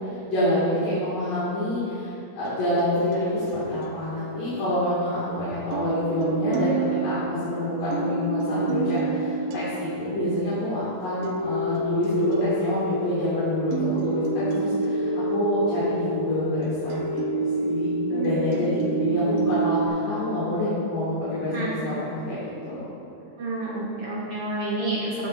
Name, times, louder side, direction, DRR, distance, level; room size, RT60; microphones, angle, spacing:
voice 1, 0.0-13.8 14.0-17.0 17.4-22.8, equal, 70° left, -11 dB, 4.0 m, -27 dB
sound 1, 2.4-5.3 5.7-19.9, right 2 dB, 80° right, 2.5 m, -29 dB
voice 2, 18.1-19.5 21.5-21.8 23.4-25.3, right 2 dB, 55° right, -5 dB, 1.7 m, -30 dB
14.5 x 6.1 x 4.2 m, 2.6 s
omnidirectional pair, 4.0 m